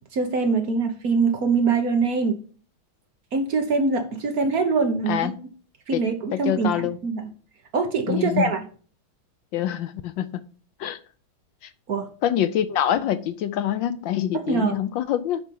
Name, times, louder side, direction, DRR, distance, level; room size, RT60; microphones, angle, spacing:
voice 1, 0.1-2.4 3.3-5.3 5.9-7.3 7.7-8.6 11.9-12.1 14.3-14.8, right 4 dB, 50° right, 5 dB, 1.4 m, -23 dB
voice 2, 6.3-7.0 8.1-8.5 9.5-10.3 10.8-11.0 12.2-15.4, left 10 dB, 70° left, 12 dB, 1.3 m, -25 dB
10.5 x 4.4 x 5.3 m, 0.41 s
omnidirectional pair, 2.3 m